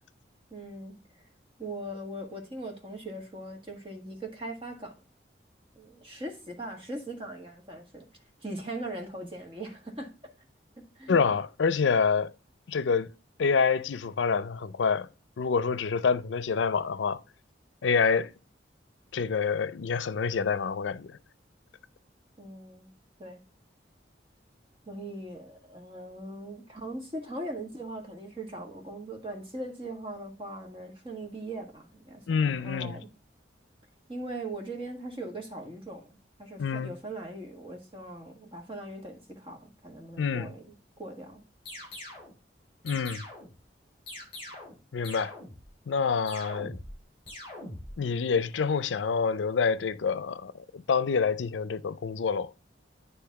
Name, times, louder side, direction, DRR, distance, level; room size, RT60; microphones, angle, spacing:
voice 1, 0.5-0.9 1.6-5.0 5.7-8.1 8.4-10.1 10.8-11.3 22.4-22.9 23.2-23.4 24.9-33.1 34.1-41.4, right 1 dB, 30° right, 1.6 m, -40 dB
voice 2, 11.1-12.3 12.7-13.1 13.4-15.1 15.4-17.2 17.8-18.3 19.1-21.2 32.3-33.0 36.6-36.9 40.2-40.5 42.8-43.2 44.9-45.4 45.9-46.8 48.0-52.5, left 5 dB, 85° left, 0.5 m, -27 dB
sound 1, 41.7-42.3 42.9-43.6 44.1-44.8 45.0-45.7 46.3-47.0 47.3-47.9, left 1 dB, 30° left, 4.9 m, -42 dB
10.0 x 3.3 x 5.8 m
head